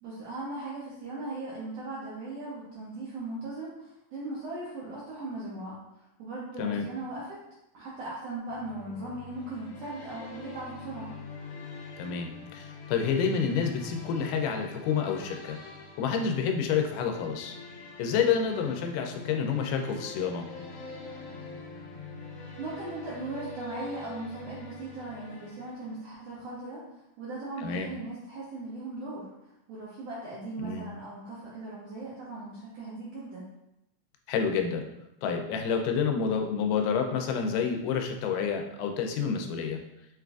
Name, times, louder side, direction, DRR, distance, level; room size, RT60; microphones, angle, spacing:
voice 1, 0.0-5.8 6.2-7.4 7.7-11.1 22.6-26.8 27.2-33.5, right 2 dB, 75° right, -6 dB, 1.5 m, -38 dB
sound 1, 8.4-26.2, left 4 dB, 70° left, 1.4 m, -44 dB
voice 2, 12.0-15.6 16.0-17.5 18.0-20.4 27.6-27.9 30.6-30.8 34.3-34.8 35.2-39.8, left 6 dB, 90° left, 4 dB, 2.1 m, -29 dB
6.0 x 2.5 x 2.3 m, 0.89 s
omnidirectional pair, 3.6 m